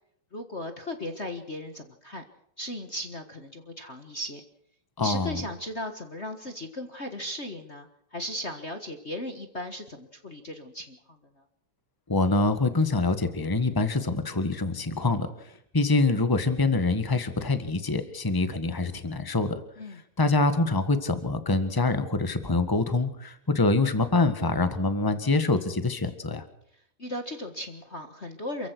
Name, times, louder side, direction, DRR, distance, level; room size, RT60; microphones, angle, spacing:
voice 1, 0.3-2.2 2.6-4.4 5.0-11.2 19.8-20.0 27.0-28.7, left 1 dB, 35° left, 5 dB, 1.1 m, -37 dB
voice 2, 5.0-5.4 12.1-15.3 15.7-19.6 19.9-26.4, left 3 dB, 15° left, 10 dB, 0.7 m, -25 dB
28.0 x 15.5 x 6.2 m, 0.73 s
omnidirectional pair, 3.5 m